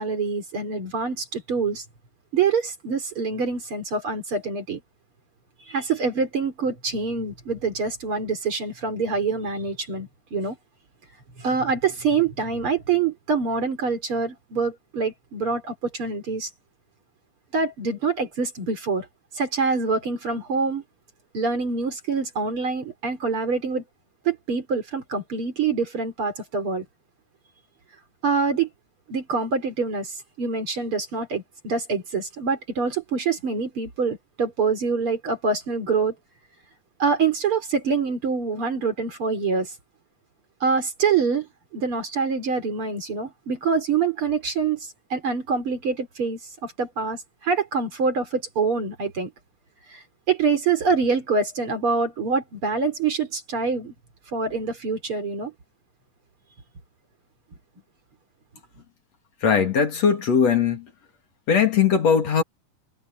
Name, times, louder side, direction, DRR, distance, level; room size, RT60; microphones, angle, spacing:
voice 1, 0.0-1.8 2.3-4.8 5.7-10.6 11.4-16.5 17.5-19.1 19.3-20.8 21.3-23.8 24.2-26.8 28.2-28.7 29.1-36.1 37.0-39.7 40.6-49.3 49.9-50.0 50.3-53.9 54.3-55.5, right 5 dB, 40° right, 3.9 m, -25 dB
voice 2, 59.4-60.9 61.5-62.4, left 6 dB, 55° left, 3.4 m, -19 dB
omnidirectional pair, 3.6 m